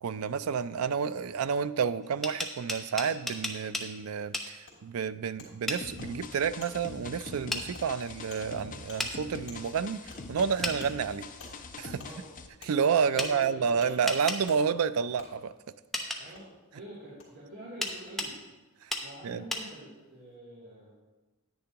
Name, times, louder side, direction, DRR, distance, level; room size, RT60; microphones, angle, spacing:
voice 1, 0.0-11.3 11.8-12.0 12.6-15.5 18.8-18.9 19.2-19.4, right 6 dB, 70° right, 14 dB, 0.4 m, -30 dB
sound 1, 2.0-3.9 4.3-4.5 5.7-5.8 7.5-7.7 9.0-9.1 10.6-10.8 13.2-13.3 14.1-14.4 15.9-16.2 17.8-18.3 18.9-19.1 19.5-19.7, left 1 dB, ahead, 0.7 m, -33 dB
Wood, 4.7-4.8 5.4-5.5 6.0-6.1 6.6-6.7 7.2-7.3 7.7-7.9 8.3-8.5 8.9-9.0 9.5-9.6 10.1-10.2 10.8-10.9 11.4-11.5 12.0-12.1 12.6-12.7 13.2-13.4 13.8-13.9 14.5-14.6 15.2-15.3 16.3-16.5 17.2-17.3 17.9-18.0, left 3 dB, 65° left, 3.1 m, -48 dB
sound 2, 5.8-12.5, left 3 dB, 40° left, 0.6 m, -44 dB
voice 2, 13.1-13.9 16.2-16.5 16.7-18.4 19.0-20.9, right 1 dB, 50° right, -8 dB, 2.4 m, -46 dB
10.0 x 9.6 x 2.9 m, 1.2 s
head